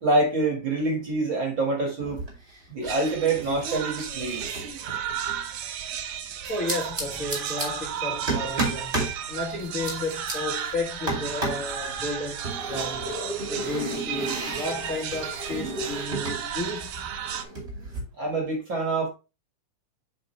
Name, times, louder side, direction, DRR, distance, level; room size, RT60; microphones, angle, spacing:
voice 1, 0.0-2.2 2.7-4.5 5.4-5.8 18.2-19.1, right 2 dB, 45° right, 1.8 m, -26 dB
sound 1, 2.0-2.6 2.8-5.4 6.4-7.7 8.3-9.2 9.6-10.3 11.1-11.7 12.4-16.4 16.7-18.0, right 2 dB, 20° right, 2.5 m, -33 dB
sound 2, 2.8-17.4, right 8 dB, 75° right, 1.8 m, -34 dB
voice 2, 6.5-8.9 9.3-12.4 12.7-13.0 13.5-16.9, left 2 dB, 70° left, 0.7 m, -32 dB
7.7 x 4.9 x 3.1 m
omnidirectional pair, 3.8 m